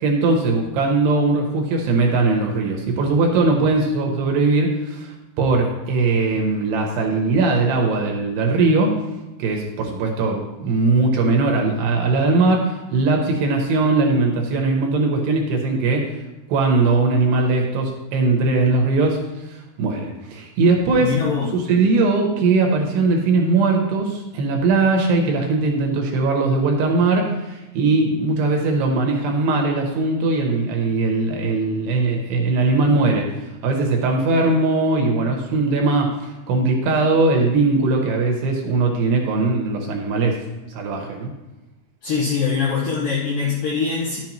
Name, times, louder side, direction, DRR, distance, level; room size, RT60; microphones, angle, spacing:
voice 1, 0.0-9.0 9.4-16.1 16.5-19.2 19.5-21.2 21.5-33.3 33.6-40.4 40.7-41.3, right 3 dB, 75° right, 1 dB, 2.8 m, -20 dB
voice 2, 21.0-21.5 42.0-44.2, left 5 dB, 70° left, -6 dB, 2.1 m, -22 dB
11.0 x 7.2 x 3.0 m, 1.0 s
omnidirectional pair, 5.4 m